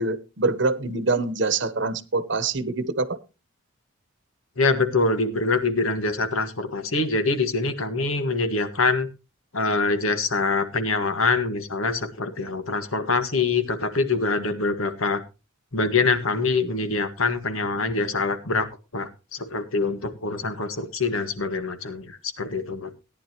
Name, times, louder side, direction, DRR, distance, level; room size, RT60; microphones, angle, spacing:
voice 1, 0.0-3.2, right 3 dB, 60° right, 15 dB, 0.9 m, -25 dB
voice 2, 4.6-9.1 9.5-15.2 15.7-18.7 18.9-23.0, left 3 dB, 85° left, 9 dB, 1.6 m, -24 dB
17.5 x 10.0 x 2.9 m, 0.28 s
head